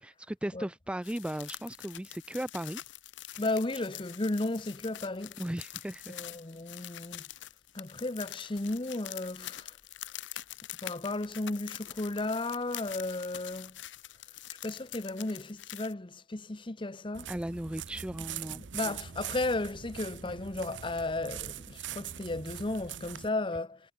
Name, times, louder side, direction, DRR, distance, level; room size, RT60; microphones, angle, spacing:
voice 1, 0.0-2.8 3.3-3.4 3.7-3.8 5.4-6.2 17.3-18.6, right 1 dB, 5° right, 0.4 m, -37 dB
sound 1, 1.0-15.9, left 13 dB, 85° left, 0.8 m, -45 dB
voice 2, 3.4-5.4 6.1-7.2 7.7-9.7 10.8-13.7 14.6-17.3 18.7-23.8, left 2 dB, 30° left, 0.9 m, -34 dB
sound 2, 17.1-23.3, right 9 dB, 85° right, 0.8 m, -42 dB
head